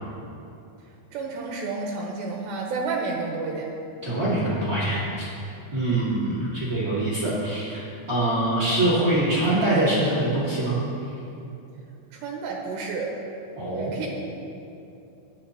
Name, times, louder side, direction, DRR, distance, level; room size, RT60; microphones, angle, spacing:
voice 1, 1.1-3.7 5.9-6.0 12.1-13.1 13.7-14.1, right 4 dB, 80° right, 0 dB, 2.8 m, -30 dB
voice 2, 4.0-5.2 5.7-10.8 13.6-14.0, right 1 dB, 40° right, -10 dB, 1.2 m, -24 dB
21.0 x 7.9 x 2.9 m, 2.8 s
omnidirectional pair, 5.3 m